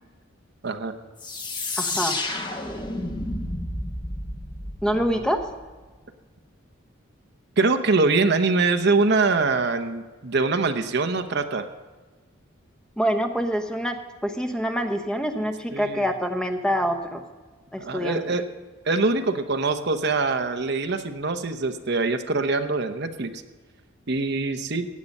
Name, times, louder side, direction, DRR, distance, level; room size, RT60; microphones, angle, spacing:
sound 1, 1.2-5.8, left 2 dB, 25° left, 1.2 m, -31 dB
voice 1, 1.8-2.2 4.8-5.5 13.0-17.2 17.7-18.2, equal, 5° left, 6 dB, 0.9 m, -26 dB
voice 2, 7.6-11.7 15.7-16.0 17.8-18.5 18.9-23.3 24.1-24.9, right 3 dB, 55° right, 8 dB, 0.9 m, -23 dB
16.0 x 9.6 x 5.3 m, 1.3 s
head